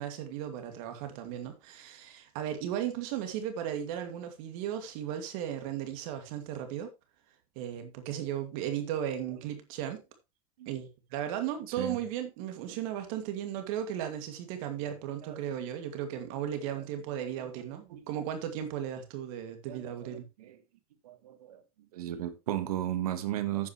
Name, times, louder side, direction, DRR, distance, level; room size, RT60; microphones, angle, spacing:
voice 1, 0.0-6.9 7.6-10.0 10.7-20.3, right 10 dB, 65° right, 2.4 m, -36 dB
voice 2, 19.7-20.6 21.0-21.6 21.9-23.7, right 12 dB, 80° right, 1.6 m, -35 dB
10.5 x 8.9 x 3.1 m
hypercardioid pair, 100°, 19 cm